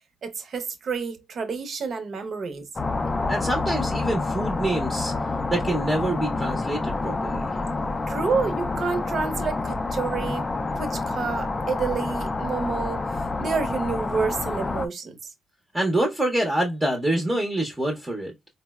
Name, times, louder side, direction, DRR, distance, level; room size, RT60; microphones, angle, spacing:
voice 1, 0.2-2.7 8.1-10.5 10.8-15.2, right 4 dB, 55° right, 0.7 m, -29 dB
sound 1, 2.8-14.9, left 3 dB, 25° left, 0.3 m, -28 dB
voice 2, 3.3-5.1 5.5-7.5 15.7-18.3, right 1 dB, 15° right, 0.7 m, -26 dB
3.8 x 2.0 x 2.2 m
cardioid pair, 90°, 0 cm